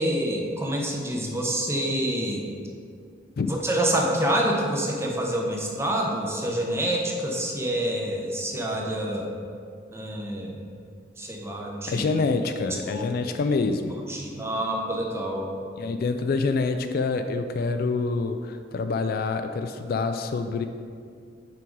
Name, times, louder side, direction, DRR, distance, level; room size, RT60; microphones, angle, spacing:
voice 1, 0.0-2.4 3.4-9.3 9.9-10.6 11.2-12.0 12.9-13.1 14.1-15.5, right 1 dB, 15° right, -1 dB, 0.8 m, -27 dB
voice 2, 11.9-14.0 15.8-20.7, left 4 dB, 50° left, 7 dB, 0.3 m, -26 dB
5.9 x 5.0 x 4.6 m, 2.3 s
head